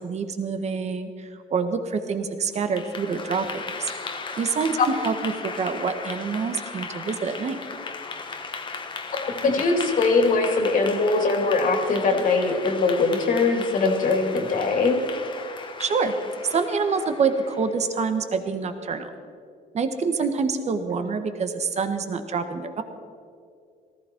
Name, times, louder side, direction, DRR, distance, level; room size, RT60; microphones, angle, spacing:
voice 1, 0.0-3.9 4.4-7.6 15.8-16.2 16.5-19.1 19.7-22.8, right 5 dB, 40° right, 8 dB, 1.4 m, -26 dB
Clapping / Applause, 2.5-17.8, left 4 dB, 30° left, 1.3 m, -36 dB
voice 2, 9.1-15.0, left 3 dB, 55° left, 4 dB, 2.5 m, -21 dB
18.0 x 14.5 x 4.5 m, 2.3 s
cardioid pair, 110°, 17 cm